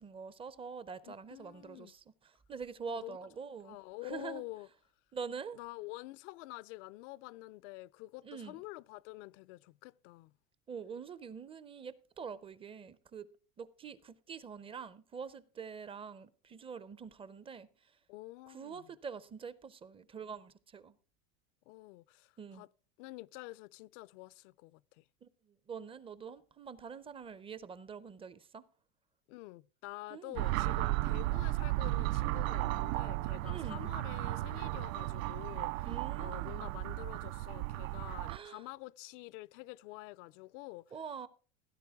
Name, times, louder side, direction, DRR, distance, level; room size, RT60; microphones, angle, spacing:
voice 1, 0.0-3.8 4.0-4.4 5.1-5.6 8.2-8.6 10.7-13.3 13.6-17.7 18.5-20.9 22.4-22.7 25.2-25.3 25.7-28.6 30.1-30.4 33.4-33.9 35.8-36.7 38.3-38.6 40.9-41.3, right 6 dB, 15° right, 0.4 m, -45 dB
voice 2, 1.0-1.9 2.9-3.2 3.6-4.7 5.5-10.3 18.1-18.9 21.7-22.7 23.0-25.0 29.3-35.9 36.2-40.9, left 20 dB, 60° left, 0.5 m, -48 dB
sound 1, 30.4-38.4, right 18 dB, 70° right, 0.5 m, -34 dB
17.0 x 10.0 x 3.5 m
supercardioid pair, 135°, 42 cm